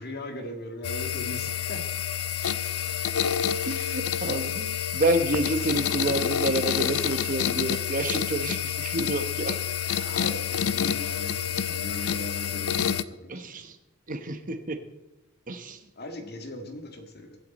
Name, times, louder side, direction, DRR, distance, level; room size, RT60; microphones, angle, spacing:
voice 1, 0.0-1.8 3.7-4.1 9.7-13.5 16.0-17.4, left 1 dB, 45° left, 5 dB, 1.9 m, -39 dB
sound 1, 0.8-13.0, left 8 dB, 80° left, 0.5 m, -28 dB
voice 2, 3.6-9.6 13.3-13.8 14.1-14.8 15.5-15.8, right 2 dB, 40° right, 8 dB, 1.0 m, -29 dB
23.5 x 8.2 x 4.2 m, 1.0 s
head